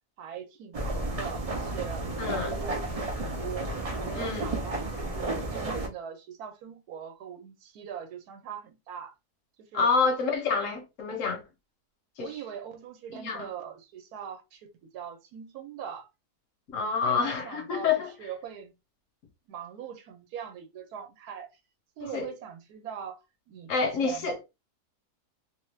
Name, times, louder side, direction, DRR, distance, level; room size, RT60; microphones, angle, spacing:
voice 1, 0.2-3.7 4.0-9.1 9.6-9.9 12.2-14.7 14.9-16.1 17.0-17.9 18.2-18.7 19.5-21.5 22.0-24.4, right 8 dB, 75° right, 1.2 m, -41 dB
sound 1, 0.7-5.9, right 2 dB, 50° right, 0.4 m, -32 dB
voice 2, 2.2-2.5 4.1-4.5 9.7-11.4 12.2-12.4 13.1-13.5 16.7-18.1 22.0-22.3 23.7-24.4, left 5 dB, 60° left, 1.1 m, -28 dB
2.9 x 2.3 x 3.2 m
omnidirectional pair, 1.7 m